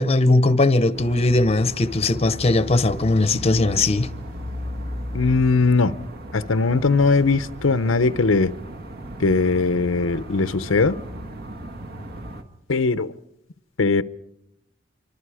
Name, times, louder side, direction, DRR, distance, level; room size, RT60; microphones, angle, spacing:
voice 1, 0.0-4.1, left 2 dB, 30° left, 0.8 m, -19 dB
sound 1, 0.9-12.4, equal, 50° right, 1.8 m, -36 dB
voice 2, 5.1-6.0 6.3-8.5 9.2-11.0 12.7-13.1 13.8-14.0, left 3 dB, 85° left, 0.7 m, -20 dB
27.0 x 24.0 x 4.9 m
head